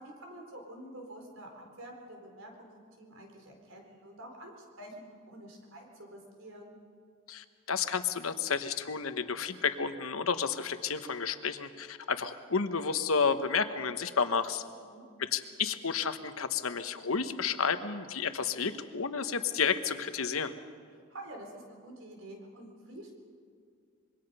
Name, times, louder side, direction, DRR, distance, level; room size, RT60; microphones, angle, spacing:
voice 1, 0.0-6.8 14.7-15.0 20.9-23.1, right 1 dB, 75° right, 2 dB, 4.1 m, -48 dB
voice 2, 7.3-14.6 15.2-20.5, left 5 dB, 90° left, 10 dB, 1.1 m, -31 dB
25.5 x 22.5 x 5.5 m, 2.2 s
head